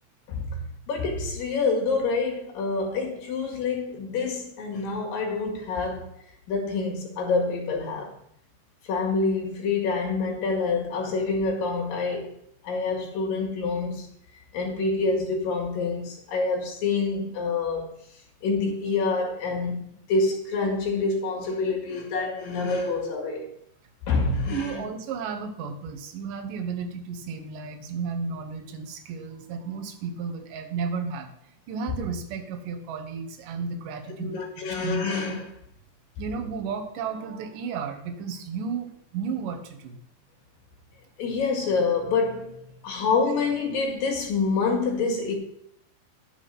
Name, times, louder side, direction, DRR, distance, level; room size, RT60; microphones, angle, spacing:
voice 1, 0.3-6.1 6.5-8.1 8.8-12.3 12.6-14.1 14.5-17.9 18.4-19.8 20.1-23.5 24.1-24.8 34.2-35.5 41.2-45.4, left 4 dB, 60° left, 3.4 m, -27 dB
voice 2, 24.5-31.3 31.7-35.0 36.2-40.0, right 5 dB, 65° right, 2.3 m, -33 dB
12.0 x 6.0 x 6.0 m
omnidirectional pair, 5.2 m